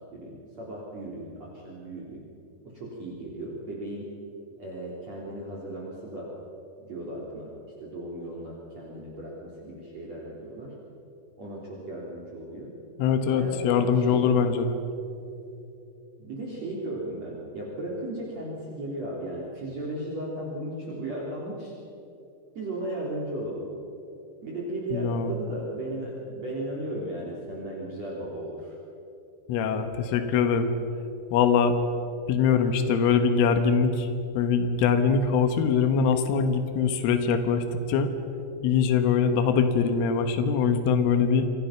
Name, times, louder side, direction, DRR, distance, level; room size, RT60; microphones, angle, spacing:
voice 1, 0.0-2.2 2.6-4.1 4.6-6.3 6.8-7.5 7.8-10.7 11.4-12.7 13.3-14.2 16.2-21.7 22.5-23.7 24.4-28.8, right 1 dB, 35° right, -4 dB, 4.1 m, -36 dB
voice 2, 13.0-14.8 24.9-25.3 29.5-30.7 31.3-31.8 32.3-34.1 34.4-38.1 38.6-41.5, left 6 dB, 85° left, 7 dB, 3.9 m, -23 dB
28.5 x 25.0 x 5.9 m, 2.8 s
omnidirectional pair, 5.6 m